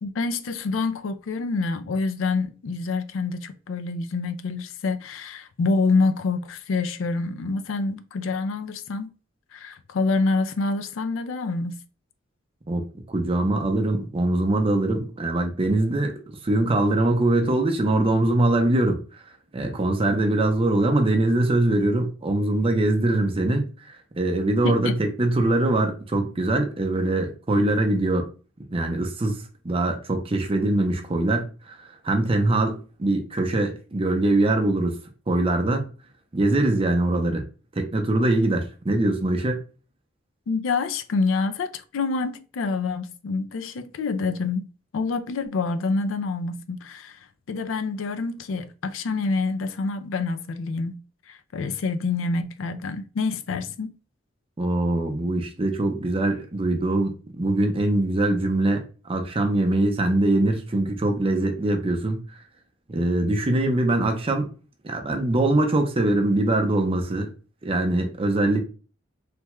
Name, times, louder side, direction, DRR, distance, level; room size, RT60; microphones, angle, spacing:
voice 1, 0.0-9.1 9.5-11.8 24.6-25.0 40.5-44.7 44.9-47.2 47.5-51.0 51.3-53.9, left 4 dB, 85° left, 0.4 m, -27 dB
voice 2, 12.7-16.1 16.4-19.0 19.5-23.7 24.2-28.3 28.7-35.0 35.3-35.9 36.3-37.4 37.8-39.6 54.6-58.8 59.1-62.2 62.9-64.5 64.8-67.3 67.6-68.6, right 2 dB, 30° right, 0.6 m, -22 dB
3.3 x 2.2 x 2.9 m
head